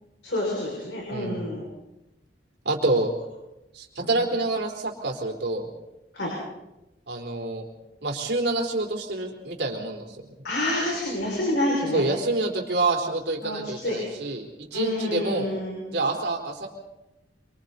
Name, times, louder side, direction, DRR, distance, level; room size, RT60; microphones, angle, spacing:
voice 1, 0.2-1.6 4.0-4.3 6.1-6.3 10.4-12.0 13.4-14.0 14.7-15.8, left 1 dB, 75° left, -2 dB, 6.1 m, -28 dB
voice 2, 1.1-1.5 2.6-3.1 3.7-5.7 7.1-7.6 8.0-10.2 11.9-15.5 15.9-16.7, right 2 dB, 70° right, 2 dB, 4.1 m, -27 dB
27.0 x 25.0 x 4.2 m, 0.96 s
head